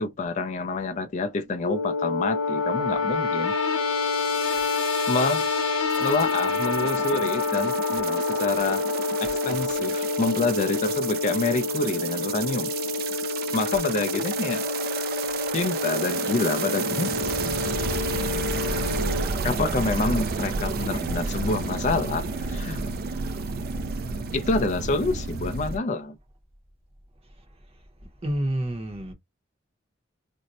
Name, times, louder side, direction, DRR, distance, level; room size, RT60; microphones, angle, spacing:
voice 1, 0.0-3.5 5.1-5.4 6.0-8.8 9.2-12.7 13.5-14.6 15.5-17.1 19.4-22.8 24.3-26.1, left 3 dB, 40° left, 0.4 m, -27 dB
sound 1, 1.6-19.2, left 4 dB, 85° left, 0.8 m, -28 dB
sound 2, 5.9-25.8, right 4 dB, 50° right, 0.4 m, -31 dB
voice 2, 28.2-29.1, right 1 dB, 30° right, 0.8 m, -29 dB
2.6 x 2.1 x 4.0 m
head